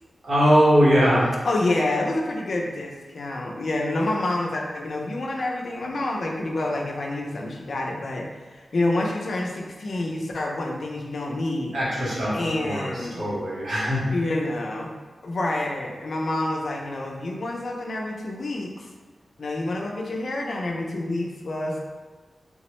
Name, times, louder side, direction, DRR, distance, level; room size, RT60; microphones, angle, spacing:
voice 1, 0.2-1.3 11.7-14.1, equal, 65° right, -7 dB, 0.9 m, -21 dB
voice 2, 1.4-11.8 12.3-13.3 14.1-14.9 15.2-18.9 19.4-21.8, left 2 dB, 60° left, 0 dB, 0.4 m, -28 dB
3.4 x 2.0 x 3.0 m, 1.4 s
wide cardioid pair, 145°, 0 cm